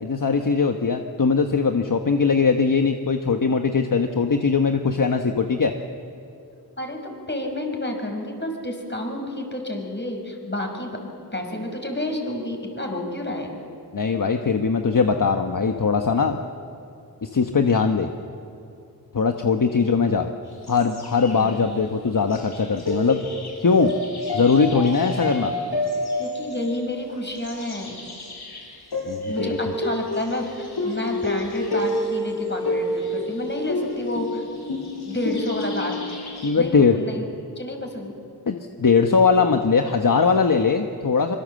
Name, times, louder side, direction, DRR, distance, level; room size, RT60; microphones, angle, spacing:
voice 1, 0.0-5.7 13.9-16.4 17.2-18.1 19.1-20.3 20.7-23.3 23.6-23.9 24.3-25.5 29.1-29.6 36.4-37.0 38.5-41.4, left 5 dB, 55° left, 5 dB, 1.3 m, -20 dB
voice 2, 7.3-11.0 11.3-13.6 21.3-21.5 26.2-28.0 29.3-34.4 35.0-36.0 36.5-37.3 37.6-38.1, left 1 dB, 30° left, 3 dB, 5.6 m, -30 dB
sound 1, 20.5-21.7 22.3-36.5, left 1 dB, 75° left, 5.6 m, -29 dB
25.0 x 23.5 x 7.8 m, 2.5 s
wide cardioid pair, 65°, 39 cm